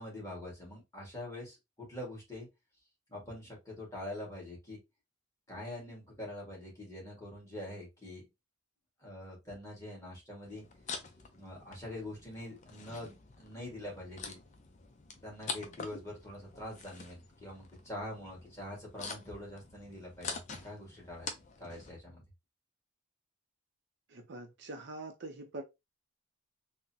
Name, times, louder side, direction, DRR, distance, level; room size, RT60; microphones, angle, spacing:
voice 1, 0.0-2.5 3.1-4.8 5.5-8.2 9.0-10.6 11.3-14.4 15.2-21.3 21.6-22.2, left 1 dB, 15° left, 1.6 m, -44 dB
sound 1, 10.5-21.9, left 4 dB, 35° left, 0.5 m, -46 dB
voice 2, 24.1-25.6, right 2 dB, 50° right, 0.5 m, -44 dB
3.8 x 2.0 x 2.7 m
head